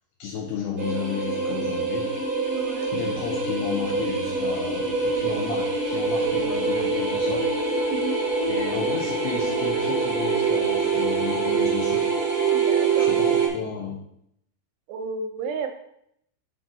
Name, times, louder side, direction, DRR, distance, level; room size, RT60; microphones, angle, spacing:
voice 1, 0.2-2.1 2.9-7.8 8.4-12.1 13.0-14.1, left 6 dB, 85° left, 0 dB, 2.3 m, -33 dB
sound 1, 0.8-13.5, right 4 dB, 45° right, 1.3 m, -24 dB
voice 2, 2.5-2.9 7.9-8.2 12.5-13.2 14.9-15.7, right 5 dB, 85° right, 6 dB, 2.9 m, -32 dB
7.0 x 6.1 x 4.1 m, 0.74 s
omnidirectional pair, 5.5 m